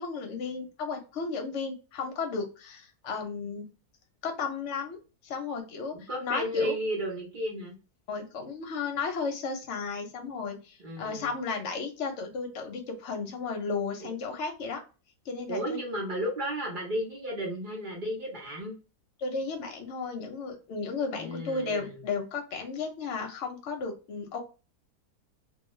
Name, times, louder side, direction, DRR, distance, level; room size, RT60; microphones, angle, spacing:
voice 1, 0.0-3.7 4.2-5.0 5.2-6.8 8.1-14.8 15.3-15.8 19.2-24.4, left 4 dB, 60° left, 4 dB, 0.9 m, -34 dB
voice 2, 5.9-7.8 10.8-11.3 14.0-14.1 15.5-18.7 21.2-22.0, equal, 45° right, -3 dB, 0.7 m, -33 dB
2.5 x 2.3 x 3.0 m, 0.32 s
omnidirectional pair, 1.7 m